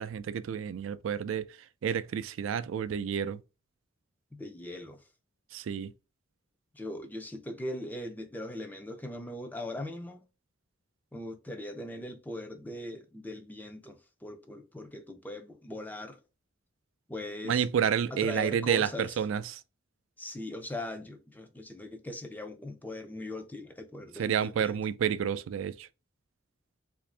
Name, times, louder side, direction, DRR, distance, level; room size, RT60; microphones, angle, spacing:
voice 1, 0.0-1.5 1.8-3.4 5.5-5.9 17.4-19.6 24.2-25.9, right 8 dB, 75° right, 0.3 m, -30 dB
voice 2, 4.3-5.0 6.7-10.2 11.1-16.2 17.1-17.7 18.1-19.2 20.2-24.8, left 1 dB, 10° left, 0.4 m, -40 dB
3.3 x 2.6 x 3.2 m
head